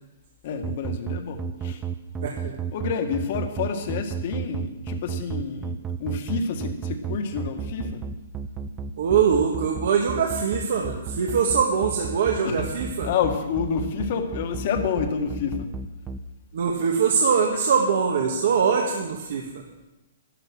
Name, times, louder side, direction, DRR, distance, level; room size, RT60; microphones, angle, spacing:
voice 1, 0.4-1.8 2.7-8.1 12.4-12.6 13.0-15.7, left 6 dB, 45° left, 5 dB, 1.8 m, -29 dB
sound 1, 0.6-16.2, right 6 dB, 15° right, 0.6 m, -31 dB
voice 2, 2.2-2.6 9.0-13.1 16.5-19.4, right 6 dB, 65° right, 0 dB, 1.7 m, -22 dB
12.0 x 11.5 x 6.2 m, 1.0 s
hypercardioid pair, 160°, 0 cm